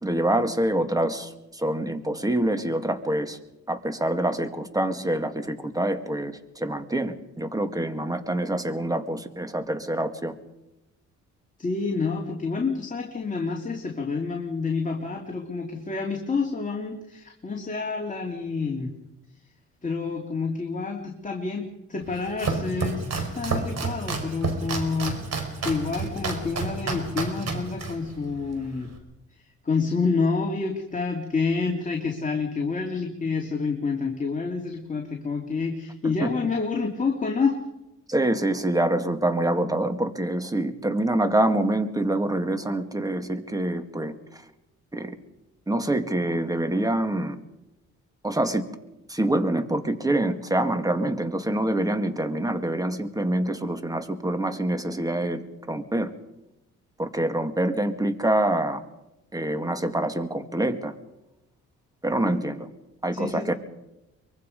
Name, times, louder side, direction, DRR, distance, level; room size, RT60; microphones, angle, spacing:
voice 1, 0.0-3.4 3.7-10.3 36.2-36.3 38.1-44.1 44.9-45.2 45.7-47.4 48.2-48.7 49.1-56.1 57.0-58.8 59.3-60.9 62.0-62.7 63.0-63.5, right 1 dB, 10° right, 8 dB, 2.2 m, -26 dB
voice 2, 11.6-18.9 19.8-25.2 25.6-28.9 29.6-37.6 62.2-62.4 63.1-63.5, left 4 dB, 25° left, 1 dB, 2.8 m, -28 dB
Domestic sounds home sounds, 22.0-29.0, right 4 dB, 60° right, 4.9 m, -31 dB
24.0 x 23.0 x 5.3 m, 0.94 s
cardioid pair, 90°, 30 cm